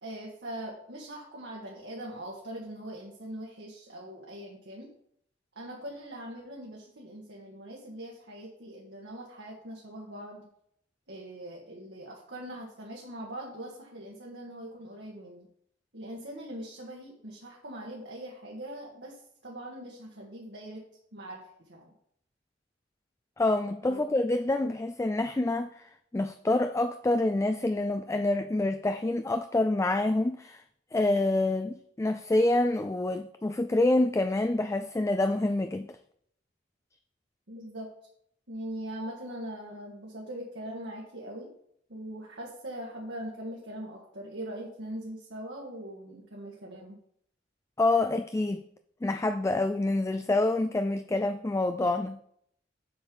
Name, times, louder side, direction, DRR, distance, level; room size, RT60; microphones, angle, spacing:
voice 1, 0.0-4.9 5.5-10.5 11.1-15.5 15.9-19.1 19.4-20.8 21.1-21.4 21.7-21.9 23.8-24.0 37.5-37.9 38.5-41.5 41.9-47.0, right 1 dB, 65° right, 1.6 m, -41 dB
voice 2, 23.4-25.7 26.1-30.6 30.9-35.9 47.8-48.6 49.0-52.2, left 2 dB, 15° left, 0.3 m, -27 dB
7.9 x 6.4 x 5.3 m
head